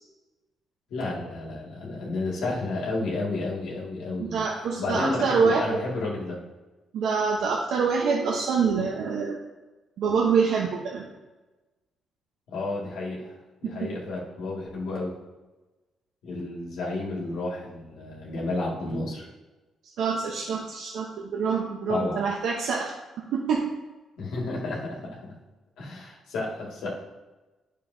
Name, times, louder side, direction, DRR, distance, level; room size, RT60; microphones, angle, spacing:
voice 1, 0.9-4.4 4.8-6.4 12.5-13.3 13.6-15.1 16.2-19.3 21.9-22.2 24.2-25.4 25.8-26.9, left 2 dB, 85° left, -4 dB, 2.1 m, -31 dB
voice 2, 4.2-5.8 6.9-9.4 10.0-11.0 13.6-13.9 20.0-22.9 23.3-23.7, right 5 dB, 75° right, -2 dB, 0.9 m, -25 dB
9.8 x 6.4 x 2.7 m, 1.2 s
cardioid pair, 90°, 0 cm